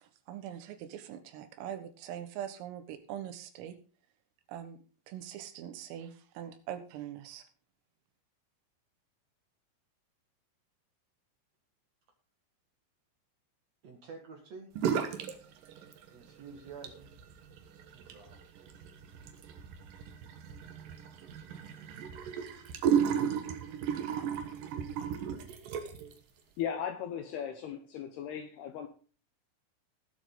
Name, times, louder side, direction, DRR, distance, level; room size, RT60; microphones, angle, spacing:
voice 1, 0.0-3.8 4.5-4.8 5.1-7.4, right 10 dB, 90° right, 4.0 m, -42 dB
voice 2, 13.8-14.7 16.1-17.1 17.9-18.4, right 5 dB, 55° right, 2.0 m, -49 dB
sound 1, 14.8-15.4 15.6-16.3 16.7-26.1, right 8 dB, 75° right, 2.1 m, -34 dB
voice 3, 26.6-28.9, left 8 dB, 75° left, 2.5 m, -37 dB
19.0 x 7.6 x 3.9 m
omnidirectional pair, 5.7 m